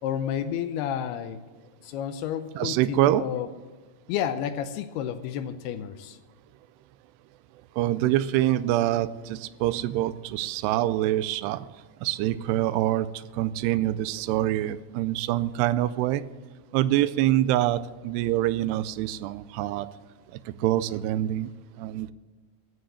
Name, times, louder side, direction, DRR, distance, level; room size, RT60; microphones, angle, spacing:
voice 1, 0.0-1.4 1.8-3.5 4.1-6.2, left 9 dB, 80° left, 10 dB, 2.5 m, -31 dB
voice 2, 2.6-3.2 7.8-11.6 12.0-13.1 13.4-16.2 16.7-19.9 20.6-21.5 21.8-22.1, right 14 dB, 85° right, 15 dB, 2.6 m, -25 dB
14.5 x 6.3 x 8.4 m, 1.4 s
omnidirectional pair, 4.8 m